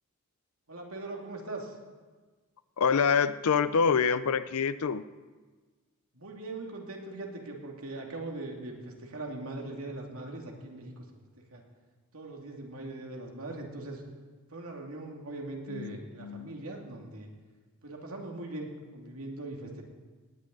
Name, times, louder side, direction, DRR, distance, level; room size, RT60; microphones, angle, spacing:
voice 1, 0.7-1.8 6.1-11.0 11.5-11.6 12.1-14.0 14.5-17.3 17.8-19.8, right 2 dB, 80° right, 0 dB, 2.5 m, -40 dB
voice 2, 2.8-5.0 15.7-16.5, left 6 dB, 90° left, 14 dB, 0.5 m, -26 dB
17.5 x 6.5 x 9.3 m, 1.4 s
head